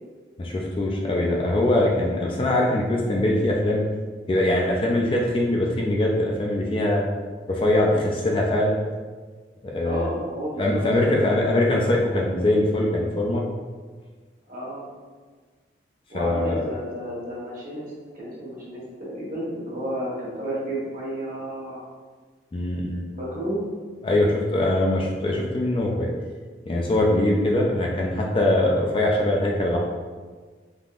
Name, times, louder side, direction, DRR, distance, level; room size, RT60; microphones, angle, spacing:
voice 1, 0.4-3.8 4.3-7.0 7.5-8.8 9.6-10.1 10.6-13.4 16.1-16.6 22.5-23.1 24.0-26.1 26.6-29.8, left 1 dB, 30° left, -1 dB, 0.3 m, -22 dB
voice 2, 2.0-2.4 9.8-11.9 12.4-12.5 14.5-14.8 16.1-21.9 23.2-23.6 27.5-27.6, equal, 50° right, -6 dB, 1.1 m, -32 dB
3.5 x 2.6 x 2.4 m, 1.4 s
head